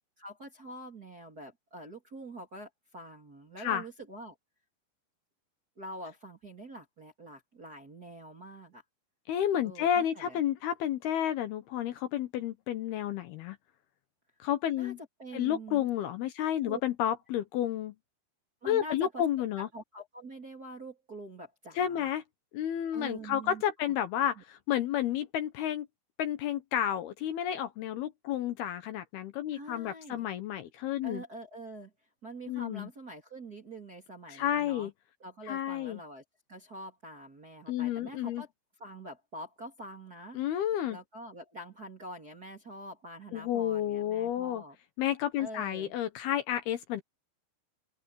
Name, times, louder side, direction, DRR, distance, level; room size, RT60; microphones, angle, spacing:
voice 1, 0.2-4.4 5.8-8.8 9.6-10.4 14.8-14.9 15.2-15.9 16.4-16.8 18.6-19.2 19.7-22.1 22.9-23.9 24.4-24.5 29.5-30.3 31.0-31.9 32.2-34.9 35.2-36.2 36.5-38.5 38.8-40.4 40.9-44.8 45.4-45.9, right 1 dB, 25° right, 2.7 m, -45 dB
voice 2, 9.3-13.6 14.4-15.0 15.3-18.0 18.7-19.7 21.8-22.2 22.5-25.9 26.2-31.2 32.5-32.9 34.3-34.9 35.5-36.0 37.7-38.4 40.3-41.0 43.3-44.6 45.0-47.0, left 10 dB, 70° left, 2.7 m, -31 dB
open air
omnidirectional pair, 5.4 m